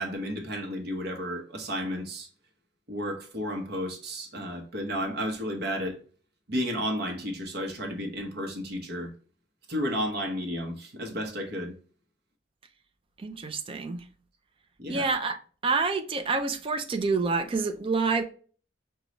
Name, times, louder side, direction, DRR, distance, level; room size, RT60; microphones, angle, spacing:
voice 1, 0.0-2.3 2.9-6.0 6.5-9.1 9.7-11.8 14.8-15.1, equal, 55° right, 0.9 m, -32 dB
voice 2, 13.2-14.0 14.9-15.4 15.6-18.2, right 4 dB, 30° right, 0.4 m, -27 dB
5.1 x 2.3 x 2.9 m
head